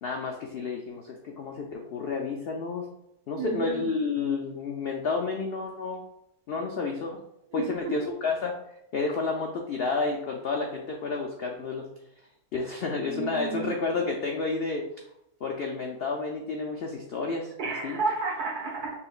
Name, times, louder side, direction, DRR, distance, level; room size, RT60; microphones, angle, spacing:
voice 1, 0.0-2.9 3.3-6.0 6.5-7.2 7.5-8.5 8.9-11.9 12.5-14.9 15.4-17.5 17.8-18.0, left 4 dB, 85° left, 1 dB, 0.5 m, -30 dB
voice 2, 3.4-3.8 7.5-8.0 13.0-13.7 17.6-18.9, right 4 dB, 80° right, -3 dB, 1.8 m, -32 dB
5.7 x 3.2 x 2.4 m, 0.78 s
omnidirectional pair, 1.6 m